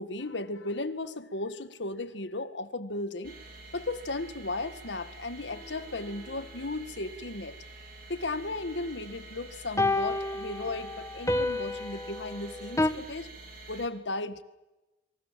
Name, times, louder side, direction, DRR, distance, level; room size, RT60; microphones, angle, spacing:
voice 1, 0.0-3.4 3.7-7.6 8.1-13.3 13.7-14.4, left 2 dB, 70° left, 12 dB, 1.6 m, -35 dB
sound 1, 3.2-13.9, right 2 dB, 55° right, 3.7 m, -48 dB
sound 2, 5.5-5.6 9.8-12.9, left 2 dB, 15° left, 1.4 m, -29 dB
27.5 x 23.5 x 7.5 m, 1.0 s
head